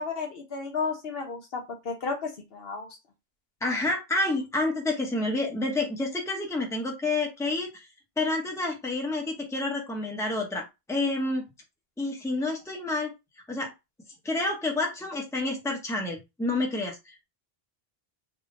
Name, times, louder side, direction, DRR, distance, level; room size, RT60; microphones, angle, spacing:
voice 1, 0.0-2.9, left 4 dB, 70° left, 3 dB, 1.1 m, -33 dB
voice 2, 3.6-7.9 8.2-11.4 12.0-13.1 13.5-13.7 14.2-17.2, left 2 dB, 5° left, 1 dB, 0.8 m, -29 dB
3.7 x 2.1 x 3.8 m, 0.23 s
omnidirectional pair, 1.0 m